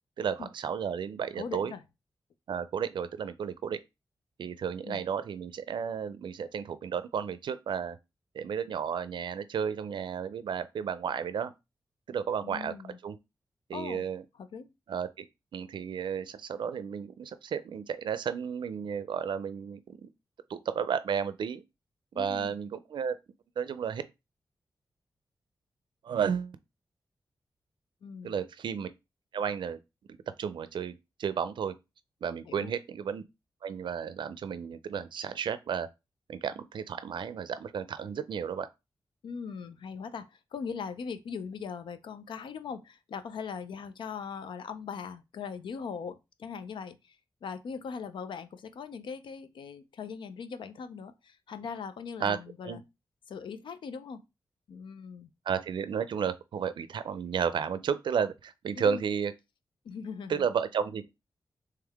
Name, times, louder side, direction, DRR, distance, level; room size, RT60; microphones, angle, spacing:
voice 1, 0.2-1.7 2.5-3.8 4.4-8.0 8.3-11.5 12.1-12.7 13.0-13.2 13.7-14.2 14.9-15.3 15.5-20.1 20.5-21.6 22.1-23.2 23.6-24.0 26.0-26.6 28.2-28.9 29.3-29.8 30.4-31.7 32.2-33.2 33.6-35.9 36.3-38.7 52.2-52.4 52.6-52.8 55.5-59.3 60.3-61.1, right 7 dB, 75° right, 0.4 m, -32 dB
voice 2, 1.4-1.8 4.9-5.0 12.4-13.0 13.7-14.1 14.4-14.7 22.1-22.5 28.0-28.4 32.5-32.7 39.2-52.8 53.3-54.2 54.7-55.3 58.8-59.0 59.8-60.5, left 6 dB, 85° left, 0.5 m, -40 dB
3.6 x 3.2 x 3.4 m
cardioid pair, 70°, 8 cm